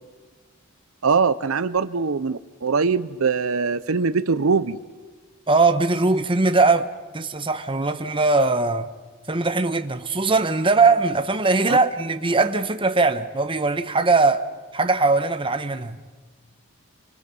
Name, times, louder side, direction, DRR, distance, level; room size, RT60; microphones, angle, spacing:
voice 1, 1.0-4.8 11.7-11.8, right 5 dB, 75° right, 0.7 m, -22 dB
voice 2, 5.5-8.9 9.3-14.5 14.7-16.0, right 3 dB, 25° right, 1.1 m, -20 dB
29.0 x 24.5 x 5.5 m
head